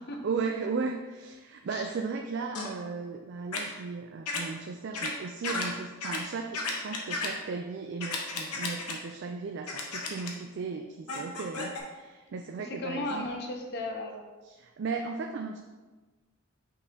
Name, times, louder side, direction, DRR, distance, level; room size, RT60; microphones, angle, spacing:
voice 1, 0.2-13.3 14.4-15.6, right 4 dB, 50° right, 3 dB, 0.3 m, -36 dB
sound 1, 2.5-2.7 3.5-3.6 4.3-4.4 4.9-5.1 5.4-5.7 6.0-6.2 6.5-7.3 8.0-8.9 9.7-10.3 11.1-11.8, left 3 dB, 85° left, 1.0 m, -33 dB
voice 2, 12.6-14.2, left 2 dB, 45° left, 3 dB, 0.8 m, -36 dB
6.4 x 5.4 x 2.8 m, 1.2 s
head